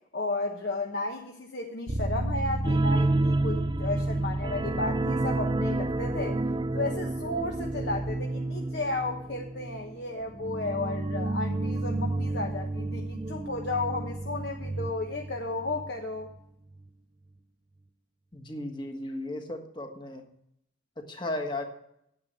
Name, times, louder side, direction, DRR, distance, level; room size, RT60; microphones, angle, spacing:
voice 1, 0.1-6.4 6.7-16.3, left 2 dB, 55° left, 2 dB, 1.1 m, -33 dB
Bass guitar, 1.9-8.1, right 1 dB, 50° right, 0.9 m, -35 dB
sound 1, 2.6-15.9 16.2-16.4 16.8-16.9, right 2 dB, 20° right, 0.3 m, -30 dB
voice 2, 18.3-20.2 21.0-21.6, left 1 dB, 25° left, 4 dB, 1.5 m, -35 dB
9.6 x 8.5 x 8.0 m, 0.75 s
head